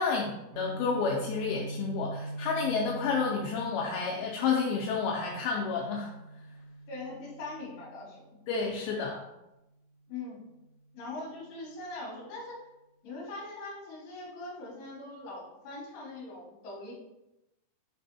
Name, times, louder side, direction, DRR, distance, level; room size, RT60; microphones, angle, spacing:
voice 1, 0.0-6.1 8.5-9.2, left 5 dB, 85° left, -1 dB, 2.4 m, -30 dB
Guitar, 0.5-8.4, right 2 dB, 65° right, 2.0 m, -43 dB
voice 2, 6.9-8.2 10.1-10.5 10.9-12.6 13.0-16.9, left 2 dB, 65° left, -4 dB, 2.7 m, -41 dB
6.0 x 3.3 x 2.7 m, 0.94 s
omnidirectional pair, 4.4 m